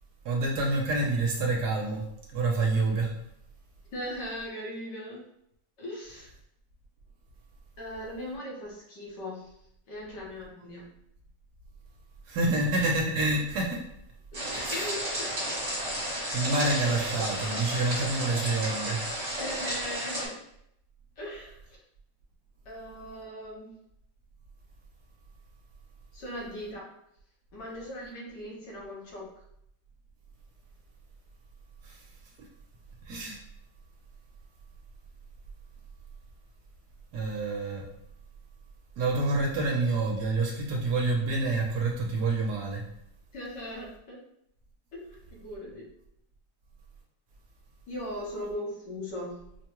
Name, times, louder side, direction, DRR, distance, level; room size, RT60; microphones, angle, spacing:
voice 1, 0.2-2.0 2.3-3.1 12.3-13.8 14.5-14.9 16.3-19.0 31.8-32.0 33.1-33.4 37.1-37.8 39.0-42.8, right 2 dB, 65° right, -1 dB, 1.2 m, -27 dB
voice 2, 3.9-5.3 5.8-6.3 7.8-9.5 9.9-10.9 14.3-15.3 19.3-20.3 21.2-21.8 22.6-23.7 26.1-26.9 27.5-29.3 43.3-44.2 44.9-45.8 47.9-49.4, equal, 70° left, -4 dB, 1.7 m, -39 dB
sound 1, 14.3-20.3, equal, 40° right, 1.5 m, -32 dB
5.1 x 2.2 x 3.0 m, 0.75 s
omnidirectional pair, 2.0 m